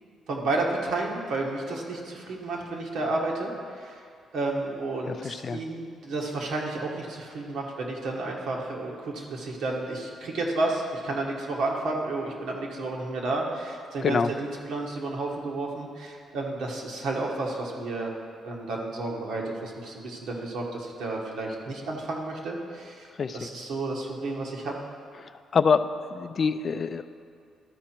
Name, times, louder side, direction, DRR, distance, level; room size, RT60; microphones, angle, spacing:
voice 1, 0.3-3.5 3.8-4.0 4.3-18.1 18.4-23.1 23.3-24.7, right 2 dB, 75° right, -1 dB, 1.4 m, -31 dB
voice 2, 5.1-5.6 14.0-14.3 23.2-23.5 25.2-25.8 26.1-27.1, left 5 dB, 45° left, 11 dB, 0.3 m, -25 dB
13.0 x 5.0 x 4.4 m, 2.3 s
cardioid pair, 115°, 0 cm